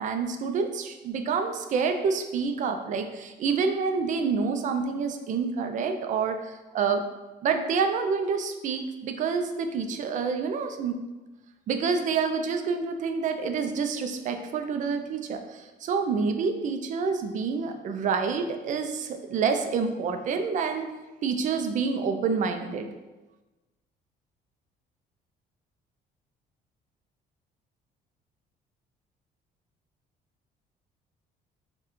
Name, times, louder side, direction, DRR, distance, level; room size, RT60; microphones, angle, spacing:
voice 1, 0.0-7.1 7.4-11.0 11.7-20.9 21.2-22.9, right 5 dB, 50° right, 7 dB, 0.4 m, -28 dB
4.6 x 2.3 x 3.0 m, 1.1 s
cardioid pair, 110°, 17 cm